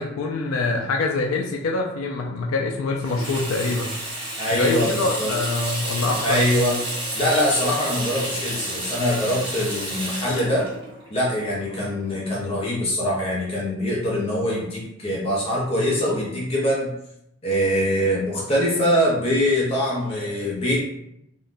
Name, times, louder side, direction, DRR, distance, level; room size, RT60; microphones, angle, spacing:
voice 1, 0.0-4.0 4.5-6.5, left 3 dB, 80° left, 1 dB, 0.4 m, -25 dB
Water tap faucet / Sink (filling or washing), 3.0-12.3, right 1 dB, 25° right, 0.9 m, -31 dB
voice 2, 4.4-5.3 6.2-6.8 7.1-10.7 11.1-16.9 17.4-20.8, equal, 30° left, -5 dB, 0.6 m, -23 dB
3.7 x 2.1 x 2.5 m, 0.81 s
head